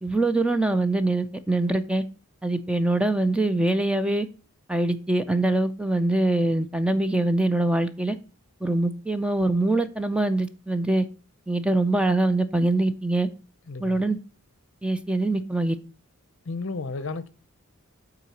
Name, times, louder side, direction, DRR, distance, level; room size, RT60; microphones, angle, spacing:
voice 1, 0.0-2.0 2.4-4.3 4.7-8.2 8.6-11.1 11.5-13.3 13.8-14.2 14.8-15.8, right 2 dB, 5° right, 0.4 m, -23 dB
voice 2, 13.7-14.0 16.4-17.3, left 3 dB, 60° left, 0.7 m, -33 dB
8.4 x 4.0 x 6.2 m
head